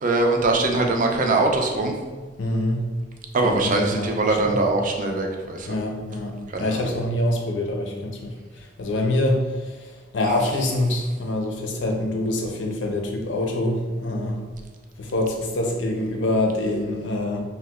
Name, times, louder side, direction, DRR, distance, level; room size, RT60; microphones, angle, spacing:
voice 1, 0.0-1.9 3.3-5.7 6.5-6.9, right 2 dB, 45° right, 2 dB, 0.5 m, -22 dB
voice 2, 2.4-2.8 3.4-4.6 5.7-8.3 8.8-9.4 10.1-14.4 15.0-17.4, left 1 dB, 90° left, 2 dB, 0.6 m, -25 dB
2.8 x 2.1 x 3.5 m, 1.4 s
head